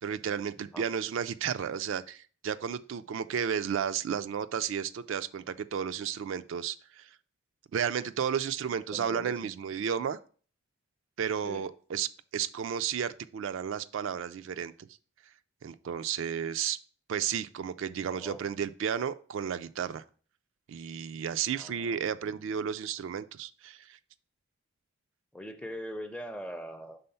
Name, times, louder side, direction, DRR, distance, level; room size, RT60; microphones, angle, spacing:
voice 1, 0.0-7.1 7.7-10.2 11.2-14.7 15.6-16.8 17.1-20.0 20.7-24.0, right 8 dB, 60° right, 12 dB, 0.3 m, -33 dB
voice 2, 8.9-9.5 11.4-11.7 18.1-18.5 21.6-22.3 25.3-27.0, equal, 5° left, 8 dB, 0.4 m, -42 dB
5.5 x 3.8 x 5.4 m, 0.42 s
head